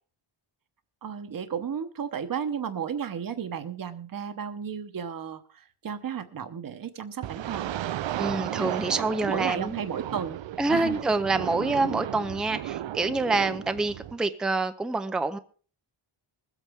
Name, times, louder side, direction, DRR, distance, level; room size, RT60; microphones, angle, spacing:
voice 1, 1.0-7.7 9.2-10.4 10.7-11.0, right 7 dB, 40° right, 1.0 m, -33 dB
sound 1, 7.2-14.2, right 12 dB, 65° right, 0.5 m, -34 dB
voice 2, 8.2-9.8 10.6-15.4, right 3 dB, ahead, 0.5 m, -27 dB
22.0 x 8.3 x 3.5 m
wide cardioid pair, 175°, 50 cm